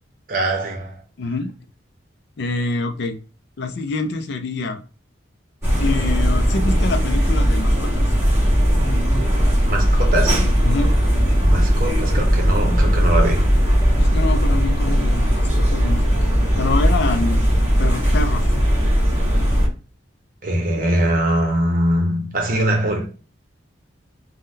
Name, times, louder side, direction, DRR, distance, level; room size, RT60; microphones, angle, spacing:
voice 1, 0.3-1.0 9.6-10.5 11.4-13.5 20.4-23.1, right 1 dB, 45° right, 0.8 m, -22 dB
voice 2, 1.2-1.5 2.4-3.2 3.6-4.8 5.8-8.1 10.6-10.9 14.0-17.4 17.8-18.5, left 3 dB, 60° left, 0.4 m, -26 dB
sound 1, 5.6-19.7, equal, 15° right, 1.2 m, -18 dB
3.6 x 2.2 x 2.6 m
head